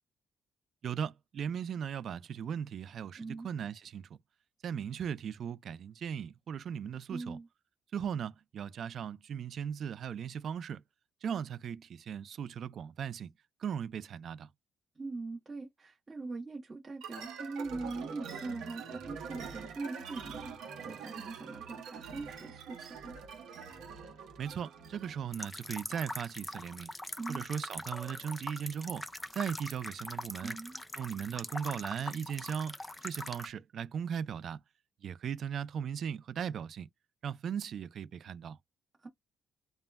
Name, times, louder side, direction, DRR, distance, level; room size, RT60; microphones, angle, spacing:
voice 1, 0.8-4.1 4.6-7.4 7.9-10.8 11.2-13.3 13.6-14.5 24.4-26.9 27.3-29.0 29.3-30.6 31.0-32.7 33.0-34.6 35.0-36.9 37.2-38.6, right 8 dB, 60° right, 0.3 m, -38 dB
voice 2, 3.2-3.5 7.1-7.5 15.0-23.2 27.2-27.4 30.4-30.8 39.0-39.1, right 3 dB, 30° right, 1.0 m, -41 dB
sound 1, 17.0-25.3, right 6 dB, 85° right, 0.8 m, -45 dB
sound 2, 25.3-33.5, left 1 dB, 15° left, 0.5 m, -42 dB
2.1 x 2.1 x 3.3 m
cardioid pair, 90°, 0 cm